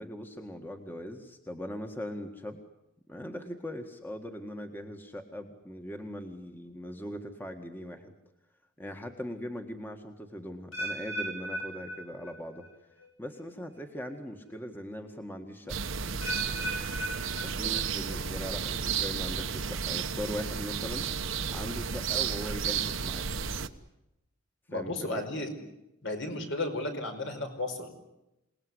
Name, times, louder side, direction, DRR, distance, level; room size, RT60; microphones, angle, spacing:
voice 1, 0.0-2.6 3.1-8.1 8.8-12.7 13.2-15.9 17.4-21.1 21.5-23.3 24.7-25.3, equal, 10° left, 4 dB, 1.8 m, -40 dB
sound 1, 10.7-12.7 13.0-13.4 14.1-14.2 16.2-18.2 18.5-18.9 19.6-19.7, right 1 dB, 80° left, 6.2 m, -37 dB
sound 2, 15.7-23.7, right 6 dB, 70° right, 1.2 m, -32 dB
voice 2, 24.7-25.5 26.0-27.9, left 2 dB, 60° left, 5 dB, 5.0 m, -34 dB
28.0 x 19.5 x 9.7 m, 0.91 s
head